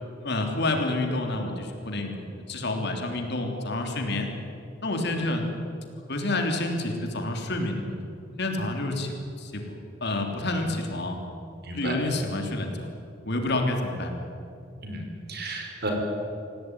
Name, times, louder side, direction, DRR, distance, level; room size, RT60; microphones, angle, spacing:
voice 1, 0.2-4.3 4.8-5.5 6.1-8.0 8.3-11.2 11.7-12.9 13.2-14.1, left 2 dB, 60° left, 3 dB, 3.3 m, -29 dB
voice 2, 11.6-11.9 14.8-15.0 15.3-15.9, right 2 dB, 55° right, 2 dB, 5.1 m, -33 dB
26.0 x 17.0 x 9.9 m, 2.7 s
head